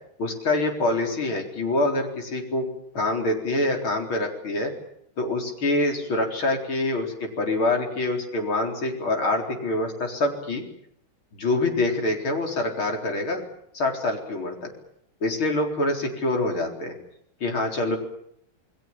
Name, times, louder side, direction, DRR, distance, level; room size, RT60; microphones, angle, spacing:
voice 1, 0.2-2.7 2.9-4.7 5.2-10.6 11.3-13.4 13.7-14.7 15.2-17.0 17.4-18.0, left 2 dB, 80° left, 2 dB, 5.0 m, -25 dB
28.5 x 21.0 x 7.4 m, 0.73 s
omnidirectional pair, 2.2 m